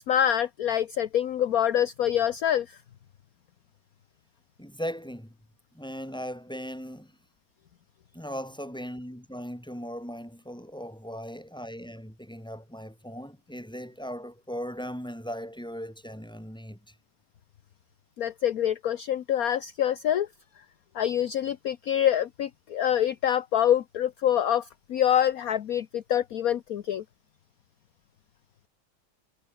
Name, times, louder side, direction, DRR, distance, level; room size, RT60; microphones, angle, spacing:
voice 1, 0.0-2.8 18.2-20.3 20.9-27.0, left 10 dB, 60° left, 1.3 m, -26 dB
voice 2, 4.6-5.4 5.7-7.2 8.1-16.9, equal, ahead, 7.2 m, -38 dB
omnidirectional pair, 1.9 m